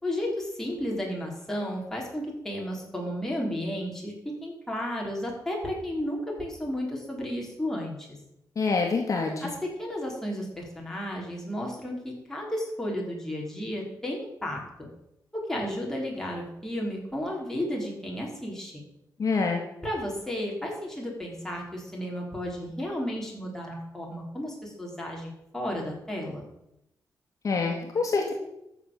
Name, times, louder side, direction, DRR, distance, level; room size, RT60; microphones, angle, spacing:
voice 1, 0.0-4.1 4.4-8.0 9.4-9.5 9.8-14.6 15.3-18.8 19.8-26.5, equal, 5° left, -2 dB, 4.0 m, -33 dB
voice 2, 8.6-9.5 19.2-19.6 27.4-28.3, left 4 dB, 50° left, 1 dB, 1.8 m, -26 dB
14.0 x 6.5 x 7.0 m, 0.84 s
wide cardioid pair, 125°, 7 cm